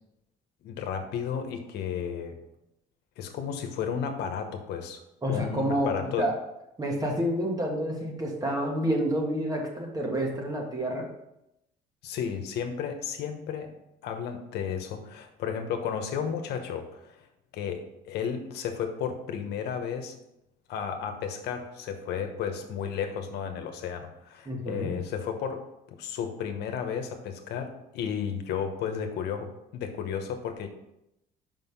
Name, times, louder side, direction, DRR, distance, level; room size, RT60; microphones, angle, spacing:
voice 1, 0.6-2.4 3.2-5.0 5.3-6.3 12.0-13.7 14.0-17.3 17.5-20.1 20.7-30.7, left 7 dB, 80° left, 6 dB, 1.1 m, -33 dB
voice 2, 5.2-6.4 6.8-11.1 24.4-25.0, equal, 20° right, 0 dB, 1.7 m, -29 dB
5.6 x 5.3 x 5.4 m, 0.87 s
cardioid pair, 110°, 17 cm